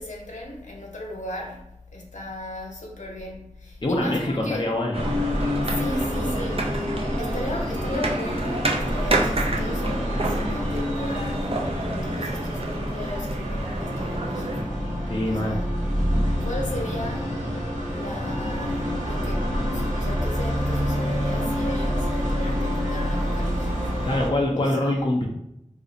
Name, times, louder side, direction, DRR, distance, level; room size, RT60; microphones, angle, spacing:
voice 1, 0.0-1.6 1.9-4.6 5.6-6.7 7.2-14.8 15.3-15.7 16.4-17.3 17.9-24.1 24.5-24.9, left 1 dB, 70° left, -1 dB, 0.8 m, -36 dB
voice 2, 3.8-5.1 15.1-15.6 24.0-25.3, left 1 dB, 40° left, -1 dB, 0.5 m, -24 dB
sound 1, 4.9-14.6, right 2 dB, 50° right, 0.5 m, -30 dB
sound 2, 4.9-24.3, equal, 80° right, 1.1 m, -27 dB
sound 3, 13.8-24.4, equal, 25° right, 1.1 m, -35 dB
2.5 x 2.4 x 3.8 m, 0.83 s
wide cardioid pair, 50°, 13 cm